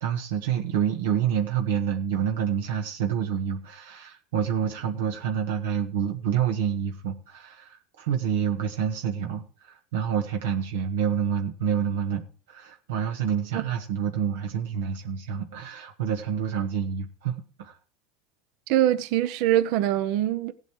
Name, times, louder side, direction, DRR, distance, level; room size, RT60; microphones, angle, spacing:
voice 1, 0.0-12.2 12.5-17.8, right 8 dB, 90° right, 1.5 m, -28 dB
voice 2, 18.7-20.5, right 12 dB, 65° right, 0.8 m, -23 dB
16.0 x 8.1 x 4.8 m
supercardioid pair, 125°, 0 cm